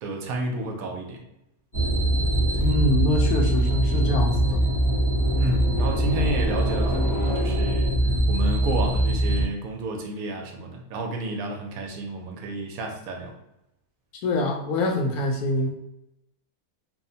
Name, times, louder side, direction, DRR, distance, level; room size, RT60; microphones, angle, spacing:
voice 1, 0.0-1.2 5.4-7.9 8.3-13.3, right 2 dB, 75° right, 2 dB, 1.0 m, -31 dB
sound 1, 1.7-9.4, right 1 dB, 25° left, 0.4 m, -22 dB
voice 2, 2.6-4.6 14.2-15.7, left 1 dB, 80° left, 2 dB, 1.1 m, -24 dB
3.0 x 2.0 x 2.7 m, 0.87 s
omnidirectional pair, 1.6 m